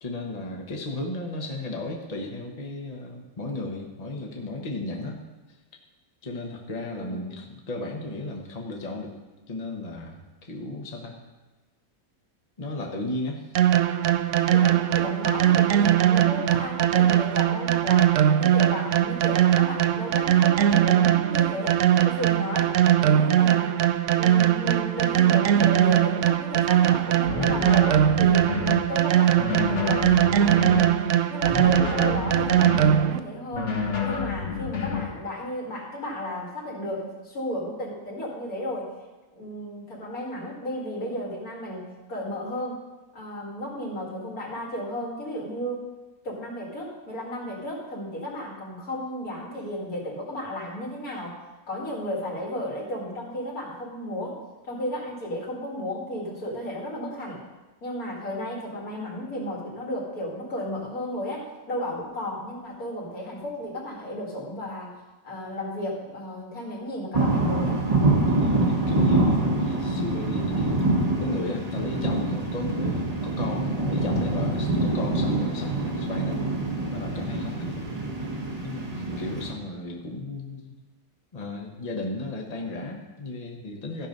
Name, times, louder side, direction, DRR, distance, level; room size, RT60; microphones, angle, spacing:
voice 1, 0.0-5.2 6.2-9.2 9.5-11.2 12.6-13.5 68.3-70.9 71.2-76.5 76.9-77.9 78.6-80.8 81.3-84.1, left 2 dB, 30° left, 1 dB, 1.3 m, -34 dB
voice 2, 6.9-7.4 14.5-18.1 18.4-23.8 24.1-30.9 31.3-33.8 34.0-38.9 39.3-42.8 43.1-45.9 46.2-51.4 51.7-54.4 54.7-57.4 57.8-65.0 65.2-67.8, left 1 dB, 80° left, -3 dB, 2.9 m, -34 dB
sound 1, 13.6-33.2, right 11 dB, 65° right, 0.8 m, -21 dB
sound 2, 27.3-28.8 29.3-30.9 31.4-33.0 33.5-35.1, left 5 dB, 55° left, 1.9 m, -29 dB
sound 3, 67.1-79.5, right 2 dB, 30° right, 1.4 m, -25 dB
14.0 x 5.9 x 5.3 m, 1.1 s
omnidirectional pair, 1.5 m